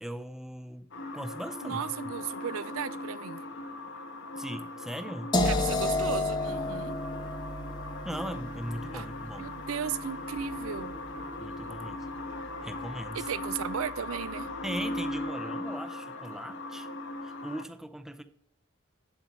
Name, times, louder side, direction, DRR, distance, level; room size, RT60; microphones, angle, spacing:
voice 1, 0.0-0.9 1.1-1.8 4.4-5.3 8.0-9.6 11.4-12.1 12.6-13.3 14.6-16.9 17.2-18.2, equal, ahead, 0.5 m, -39 dB
sound 1, 0.9-17.6, left 2 dB, 60° left, 1.2 m, -39 dB
voice 2, 1.6-3.4 5.4-7.0 8.9-9.1 9.4-11.0 13.1-14.5, right 7 dB, 75° right, 0.5 m, -35 dB
sound 2, 5.3-11.2, left 2 dB, 20° left, 1.0 m, -32 dB
sound 3, 10.4-15.2, equal, 45° right, 1.6 m, -52 dB
8.5 x 7.8 x 4.3 m
head